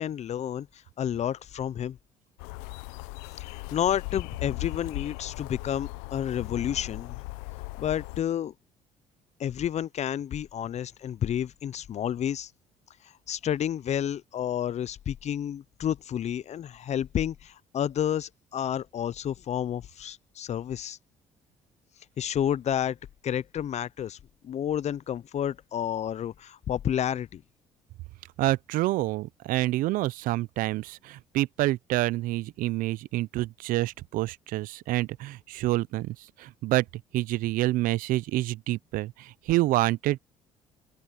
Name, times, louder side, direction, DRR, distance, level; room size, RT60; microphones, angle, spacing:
voice 1, 0.0-2.0 3.4-7.2 7.8-8.5 9.4-12.5 13.3-21.0 22.2-23.0 23.2-24.2 24.4-27.4, left 10 dB, 50° left, 0.7 m, -30 dB
sound 1, 2.4-8.2, left 25 dB, 80° left, 0.9 m, -38 dB
voice 2, 28.4-36.1 36.4-36.8 37.1-39.1 39.5-40.2, right 17 dB, 70° right, 0.8 m, -27 dB
open air
hypercardioid pair, 60°, 15 cm